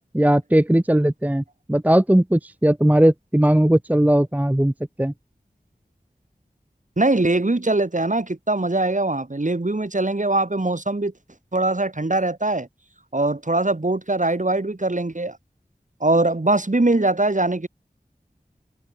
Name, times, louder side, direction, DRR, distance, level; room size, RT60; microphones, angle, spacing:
voice 1, 0.1-4.7 5.0-5.1, right 1 dB, 10° right, 0.7 m, -18 dB
voice 2, 7.0-11.1 11.5-12.7 13.1-15.4 16.0-17.7, right 2 dB, 50° right, 5.0 m, -22 dB
wide cardioid pair, 45°, 16 cm